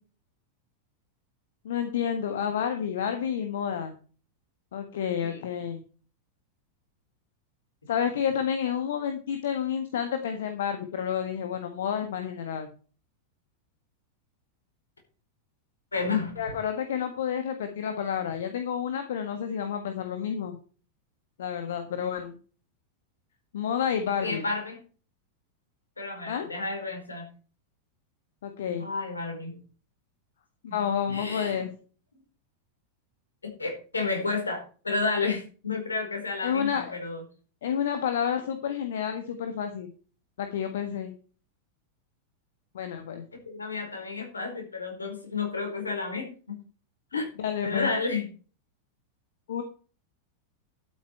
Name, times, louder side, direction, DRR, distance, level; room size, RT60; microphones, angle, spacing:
voice 1, 1.6-3.9 4.7-5.8 7.9-12.7 16.4-20.6 21.4-22.3 23.5-24.4 26.2-26.5 28.4-28.9 30.6-31.7 36.4-37.0 37.6-39.9 40.4-41.1 42.7-43.2 47.1-47.9 49.5-49.6, left 8 dB, 60° left, 7 dB, 1.5 m, -30 dB
voice 2, 15.9-16.3 24.2-24.8 26.0-27.2 28.7-29.6 31.1-31.7 33.6-37.2 43.5-46.6 47.1-47.2 47.6-48.2, left 4 dB, 75° left, 4 dB, 4.6 m, -31 dB
12.5 x 8.6 x 4.5 m, 0.38 s
figure-of-eight pair, 90°, 0 cm